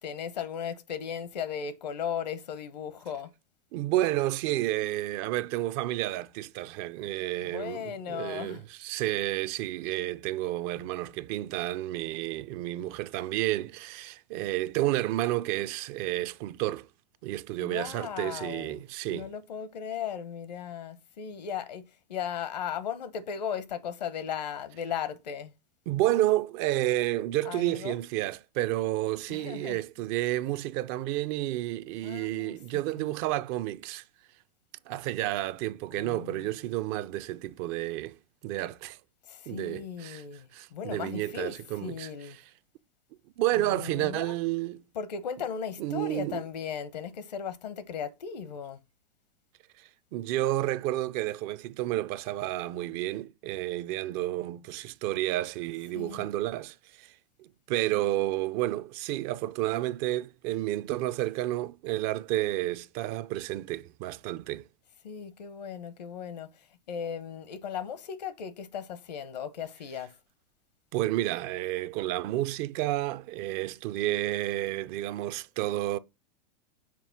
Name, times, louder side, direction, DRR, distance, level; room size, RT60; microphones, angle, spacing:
voice 1, 0.0-3.3 7.4-8.6 17.6-18.8 19.1-25.5 27.4-28.0 29.3-29.8 32.0-33.1 35.9-36.5 39.3-42.4 43.5-44.3 44.9-48.8 55.9-56.3 65.0-70.1, left 8 dB, 80° left, 1.1 m, -37 dB
voice 2, 3.7-16.9 17.2-19.3 25.9-34.0 34.9-38.1 38.4-39.0 39.5-40.2 40.5-42.1 43.4-44.8 45.8-46.4 49.8-57.1 57.4-64.6 70.9-76.0, right 15 dB, 50° right, 0.6 m, -31 dB
6.0 x 4.4 x 5.9 m
hypercardioid pair, 105°, 21 cm